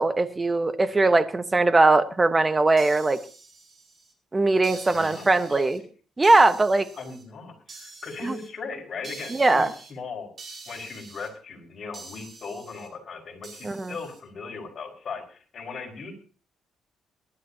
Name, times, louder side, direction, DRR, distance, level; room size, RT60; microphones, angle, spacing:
voice 1, 0.0-3.2 4.3-5.8 6.2-6.9 8.2-8.4 9.3-9.7 13.6-13.9, right 2 dB, 20° right, 11 dB, 1.1 m, -20 dB
sound 1, 2.8-4.1 4.6-5.8 6.2-7.2 7.7-8.5 9.0-9.9 10.4-11.3 11.9-12.9 13.4-14.2, right 4 dB, 40° right, 4.7 m, -45 dB
voice 2, 4.9-5.9 7.0-9.6 9.9-10.3 10.7-16.2, left 4 dB, 50° left, 1 dB, 5.0 m, -38 dB
22.5 x 12.0 x 2.8 m, 0.38 s
cardioid pair, 90°, 0 cm